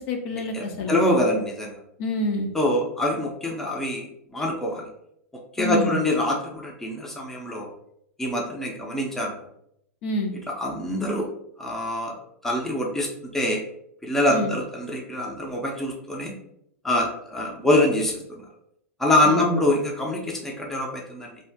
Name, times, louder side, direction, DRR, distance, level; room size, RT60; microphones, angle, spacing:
voice 1, 0.0-1.0 2.0-2.5 5.6-6.0 10.0-10.3 14.3-14.6 19.2-19.6, left 1 dB, 50° left, 3 dB, 0.6 m, -27 dB
voice 2, 0.5-1.8 2.5-4.9 5.6-7.7 8.2-9.3 10.5-11.3 11.6-12.1 12.4-13.6 14.0-16.3 16.8-18.4 19.0-21.3, left 1 dB, 5° left, -1 dB, 0.5 m, -25 dB
2.6 x 2.4 x 3.4 m, 0.73 s
hypercardioid pair, 125°, 8 cm